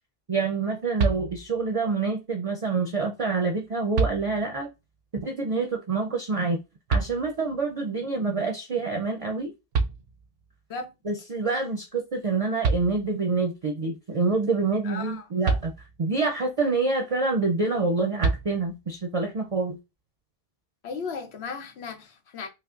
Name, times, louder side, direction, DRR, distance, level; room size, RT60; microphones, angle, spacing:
voice 1, 0.3-4.7 5.1-6.6 6.9-9.5 11.0-15.7 16.0-19.8, right 4 dB, 45° right, 0.5 m, -27 dB
sound 1, 1.0-1.7 3.2-3.3 3.9-4.7 6.9-7.6 9.4-9.5 9.7-10.6 12.3-12.4 12.6-13.4 15.4-16.3 18.2-19.0, right 4 dB, 85° right, 0.8 m, -28 dB
voice 2, 14.8-15.3 20.8-22.5, left 4 dB, 90° left, 1.0 m, -35 dB
5.1 x 2.1 x 2.4 m
omnidirectional pair, 1.0 m